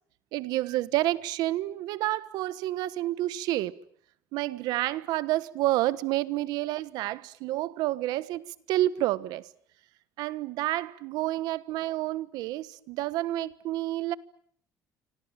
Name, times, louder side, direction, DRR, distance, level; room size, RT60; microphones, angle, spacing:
voice 1, 0.3-3.7 4.3-8.4 8.7-9.5 10.2-14.1, right 15 dB, 85° right, 1.3 m, -29 dB
28.0 x 26.0 x 7.6 m
cardioid pair, 145°, 7 cm